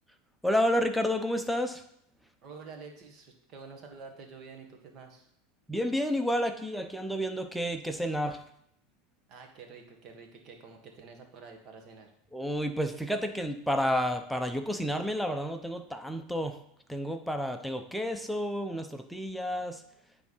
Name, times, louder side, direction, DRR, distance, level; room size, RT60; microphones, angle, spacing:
voice 1, 0.4-1.8 5.7-8.4 12.3-16.6 16.9-19.8, equal, ahead, 5 dB, 0.8 m, -30 dB
voice 2, 2.4-5.3 9.3-12.1, right 4 dB, 45° right, 3 dB, 1.7 m, -48 dB
9.1 x 3.6 x 5.6 m, 0.71 s
supercardioid pair, 120°, 0 cm